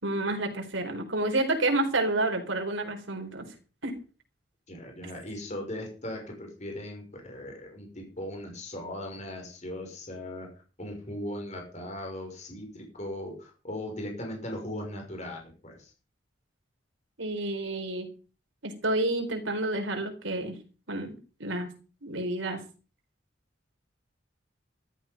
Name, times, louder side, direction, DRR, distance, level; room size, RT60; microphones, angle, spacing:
voice 1, 0.0-3.4 3.8-3.9 17.2-18.1 18.6-20.5 20.9-21.7 22.0-22.6, right 2 dB, 90° right, 4 dB, 4.4 m, -29 dB
voice 2, 4.7-10.5 10.8-15.9, left 1 dB, 35° left, 2 dB, 5.9 m, -38 dB
14.0 x 13.0 x 5.4 m, 0.37 s
head